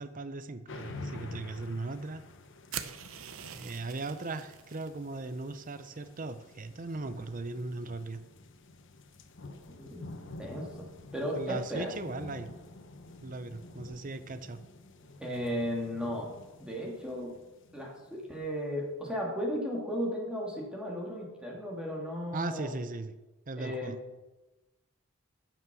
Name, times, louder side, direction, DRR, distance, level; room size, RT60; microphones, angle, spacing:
voice 1, 0.0-2.2 3.5-8.2 11.4-12.5 13.2-14.6 22.3-23.1 23.5-24.0, right 3 dB, 40° right, 11 dB, 0.7 m, -38 dB
sound 1, 0.7-18.5, left 2 dB, 60° left, 1.0 m, -49 dB
sound 2, 2.7-4.9, right 9 dB, 80° right, 0.8 m, -43 dB
voice 2, 10.4-11.9 15.2-16.3 16.6-17.3 17.7-22.7 23.6-23.9, equal, 5° right, -2 dB, 2.6 m, -35 dB
14.0 x 6.2 x 6.2 m, 1.1 s
head